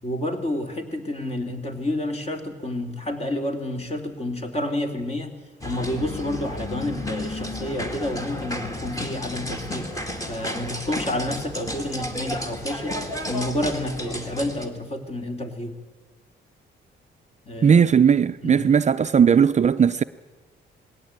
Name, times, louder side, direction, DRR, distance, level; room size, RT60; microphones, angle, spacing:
voice 1, 0.0-5.3 5.6-9.9 10.3-13.0 13.3-15.8 17.5-17.8 18.4-18.6, left 1 dB, 30° left, 2.8 m, -29 dB
sound 1, 5.6-14.7, left 1 dB, 15° left, 2.4 m, -32 dB
voice 2, 17.6-20.0, right 7 dB, 35° right, 0.5 m, -17 dB
19.5 x 16.5 x 8.9 m
cardioid pair, 90°, 20 cm